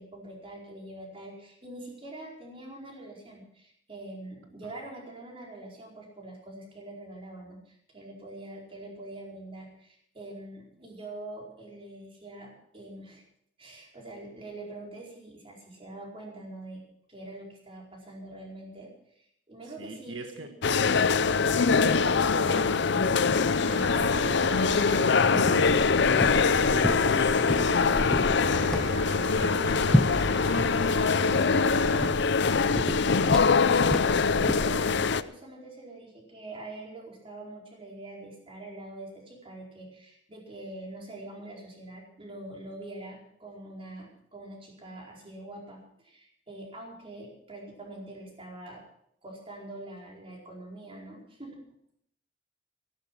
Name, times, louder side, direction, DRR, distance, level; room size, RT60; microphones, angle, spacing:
voice 1, 0.0-13.2 13.6-16.8 17.1-20.5 21.2-22.1 33.2-48.8 49.2-51.6, right 2 dB, 30° right, -2 dB, 4.8 m, -44 dB
voice 2, 19.6-20.5 21.6-24.4 24.9-27.8 28.4-30.0, right 2 dB, 80° right, 5 dB, 1.4 m, -44 dB
sound 1, 20.6-35.2, left 5 dB, 65° left, 0.6 m, -23 dB
sound 2, 23.6-32.1, right 2 dB, 60° right, 2.4 m, -37 dB
sound 3, 25.6-34.9, equal, 5° left, 0.5 m, -32 dB
15.0 x 12.0 x 6.1 m, 0.70 s
head